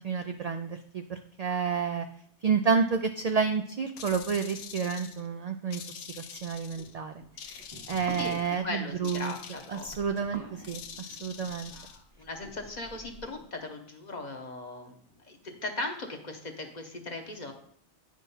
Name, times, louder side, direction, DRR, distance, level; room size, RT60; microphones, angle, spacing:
voice 1, 0.0-2.1 2.4-6.1 6.3-7.1 7.4-9.3 9.7-11.7, right 6 dB, 70° right, 7 dB, 0.3 m, -30 dB
sound 1, 4.0-5.3 5.7-6.9 7.4-8.6 9.0-10.0 10.6-12.0, left 7 dB, 90° left, 1.0 m, -45 dB
sound 2, 6.4-13.5, right 2 dB, 25° right, 1.0 m, -48 dB
voice 2, 8.2-9.9 10.4-10.5 11.7-15.0 15.3-17.5, left 2 dB, 40° left, 4 dB, 1.0 m, -38 dB
9.2 x 3.7 x 5.5 m, 0.65 s
omnidirectional pair, 1.2 m